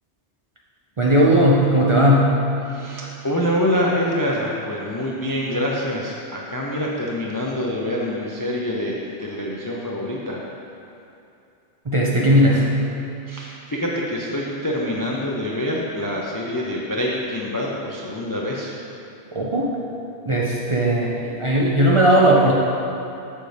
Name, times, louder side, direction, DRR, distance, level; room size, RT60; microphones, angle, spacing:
voice 1, 1.0-2.5 11.9-12.8 19.3-19.7 20.3-22.5, equal, 40° right, -4 dB, 0.5 m, -17 dB
voice 2, 2.7-10.4 13.3-18.7, left 1 dB, 30° left, -3 dB, 0.3 m, -25 dB
6.5 x 6.5 x 3.3 m, 2.7 s
omnidirectional pair, 1.2 m